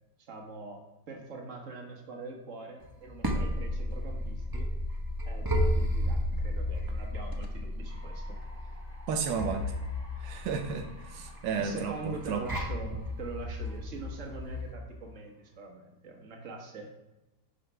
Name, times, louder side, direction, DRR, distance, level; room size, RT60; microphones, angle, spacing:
voice 1, 0.2-4.7 5.3-8.4 11.5-16.9, right 3 dB, 45° right, 1 dB, 1.6 m, -43 dB
sound 1, 2.8-14.7, left 1 dB, 20° right, 0.6 m, -33 dB
sound 2, 7.5-15.5, right 1 dB, 5° left, 2.0 m, -56 dB
voice 2, 9.1-9.7 10.2-12.4, right 6 dB, 85° right, 5 dB, 1.5 m, -33 dB
11.0 x 6.7 x 3.4 m, 0.99 s
omnidirectional pair, 1.9 m